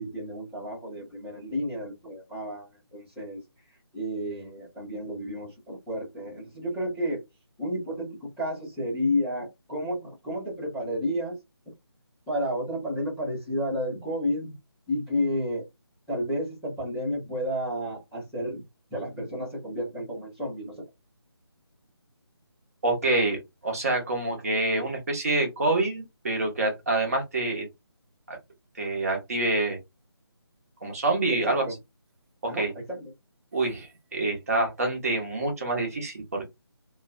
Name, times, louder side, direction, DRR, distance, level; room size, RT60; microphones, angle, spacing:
voice 1, 0.0-3.4 3.7-7.2 7.6-11.4 12.3-14.5 14.9-15.7 16.1-18.6 18.9-20.8 31.3-31.8 32.5-33.0, equal, ahead, 0.5 m, -31 dB
voice 2, 22.8-27.7 28.3-28.4 28.8-29.8 30.8-31.7 32.5-32.7 33.5-36.4, right 2 dB, 35° right, 0.9 m, -26 dB
2.5 x 2.1 x 2.4 m
figure-of-eight pair, 155°, 14 cm